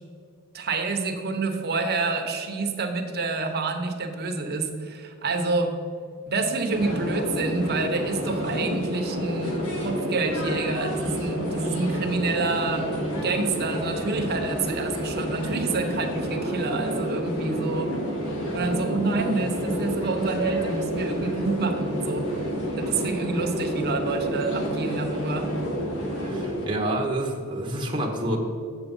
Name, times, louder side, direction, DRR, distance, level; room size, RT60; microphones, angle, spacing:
voice 1, 0.5-5.7 6.3-17.9 18.5-22.5 22.8-25.5, right 3 dB, 45° right, 4 dB, 1.0 m, -28 dB
sound 1, 6.7-26.7, equal, 75° left, 2.0 m, -29 dB
voice 2, 26.2-28.4, right 1 dB, 20° right, 0 dB, 1.1 m, -28 dB
7.5 x 7.1 x 5.4 m, 2.3 s
head